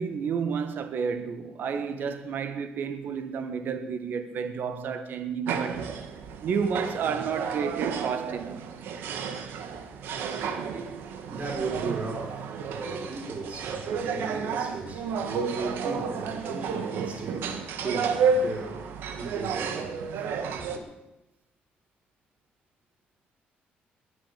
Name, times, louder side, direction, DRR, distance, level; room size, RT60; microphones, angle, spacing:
voice 1, 0.0-5.9 6.4-8.6, right 6 dB, 60° right, 1.8 m, -31 dB
sound 1, 5.5-20.8, right 5 dB, 80° right, 1.9 m, -31 dB
voice 2, 10.4-20.9, right 3 dB, 40° right, 5.2 m, -37 dB
21.0 x 7.6 x 8.8 m
cardioid pair, 125°, 4 cm